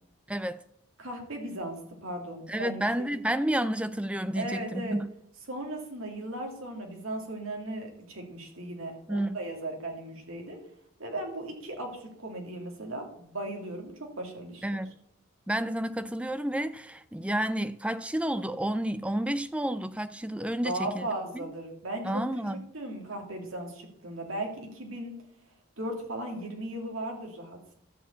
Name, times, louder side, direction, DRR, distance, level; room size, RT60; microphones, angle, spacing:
voice 1, 0.3-0.6 2.5-5.1 9.1-9.3 14.6-14.9 15.5-21.1 22.0-22.6, right 1 dB, 5° right, 0.3 m, -30 dB
voice 2, 1.0-3.2 4.3-5.0 5.5-10.6 11.0-14.8 20.6-22.2 22.5-25.1 25.8-27.6, right 1 dB, 75° right, 2.7 m, -37 dB
12.0 x 4.8 x 8.2 m
head